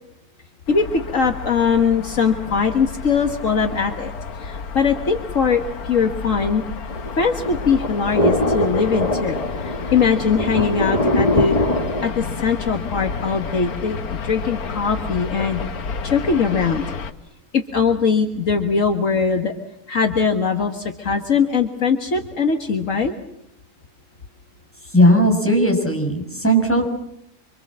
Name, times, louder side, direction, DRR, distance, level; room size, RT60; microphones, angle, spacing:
sound 1, 0.7-17.1, left 5 dB, 85° left, 1.8 m, -31 dB
voice 1, 0.7-4.1 4.4-6.6 7.2-11.6 12.0-15.7 16.0-16.8 17.5-19.5 19.9-23.1, left 5 dB, 60° left, 5 dB, 1.9 m, -21 dB
sound 2, 6.9-12.1, left 1 dB, 25° left, 1.6 m, -23 dB
voice 2, 24.8-26.9, equal, 10° left, 2 dB, 6.4 m, -17 dB
26.0 x 25.5 x 7.5 m, 0.78 s
omnidirectional pair, 1.5 m